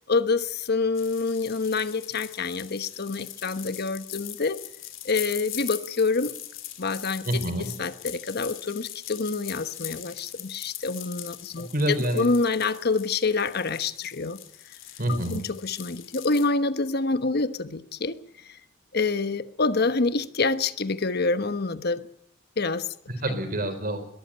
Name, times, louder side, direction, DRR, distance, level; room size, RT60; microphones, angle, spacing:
voice 1, 0.1-4.6 5.0-6.3 6.8-7.2 7.8-11.7 12.1-14.4 15.1-18.2 18.9-22.0 22.6-22.9, left 3 dB, 55° left, 12 dB, 1.1 m, -26 dB
sound 1, 0.9-16.5, left 13 dB, 85° left, 3.1 m, -41 dB
voice 2, 7.2-7.7 11.6-12.3 15.0-15.4 23.1-24.0, right 1 dB, 50° right, 9 dB, 4.4 m, -27 dB
21.5 x 14.0 x 8.9 m, 0.76 s
head